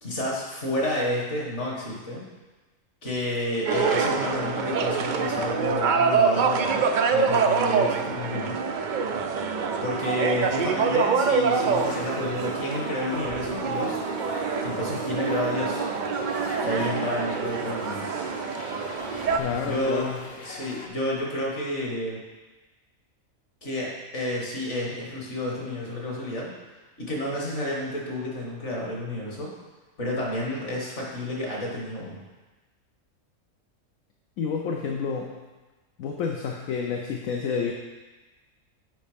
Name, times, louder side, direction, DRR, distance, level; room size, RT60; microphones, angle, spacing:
voice 1, 0.0-2.2 3.0-8.6 9.8-14.1 14.6-15.9 16.6-18.1 19.6-20.1 20.4-22.2 23.6-26.5 27.0-29.5 30.0-32.2, left 1 dB, 55° left, -3 dB, 2.1 m, -30 dB
sound 1, 3.7-19.4, right 5 dB, 75° right, 0.4 m, -26 dB
sound 2, 11.6-20.9, left 2 dB, 35° left, 0.8 m, -40 dB
voice 2, 19.3-20.2 34.4-35.3 36.0-37.7, left 5 dB, 75° left, 1 dB, 1.1 m, -29 dB
7.7 x 5.4 x 5.1 m, 1.2 s
omnidirectional pair, 1.4 m